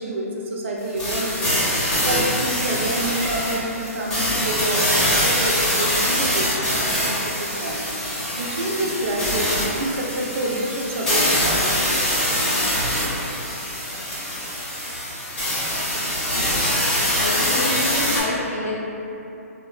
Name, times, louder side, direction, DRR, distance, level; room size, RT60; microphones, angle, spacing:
voice 1, 0.0-1.6 2.1-7.8 8.4-12.6, right 1 dB, 50° right, -1 dB, 0.4 m, -28 dB
sound 1, 1.0-18.2, equal, 10° left, 0.6 m, -23 dB
voice 2, 16.9-18.8, left 1 dB, 70° left, -5 dB, 0.6 m, -28 dB
3.4 x 2.2 x 2.2 m, 2.9 s
hypercardioid pair, 160°, 8 cm